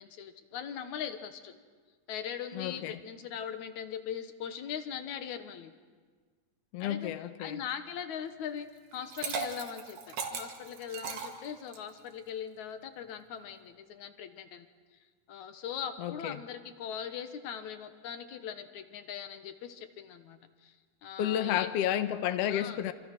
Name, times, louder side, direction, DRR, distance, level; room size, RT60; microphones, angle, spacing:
voice 1, 0.0-1.5 2.1-5.7 6.8-7.1 7.4-8.7 8.9-14.7 15.3-20.8 21.0-21.9 22.5-22.8, left 8 dB, 65° left, 2.4 m, -40 dB
voice 2, 2.5-3.0 6.7-7.6 16.0-16.4 21.2-22.9, left 11 dB, 80° left, 1.4 m, -31 dB
Liquid, 8.9-12.0, right 5 dB, 90° right, 4.0 m, -37 dB
27.5 x 26.5 x 6.1 m
omnidirectional pair, 4.1 m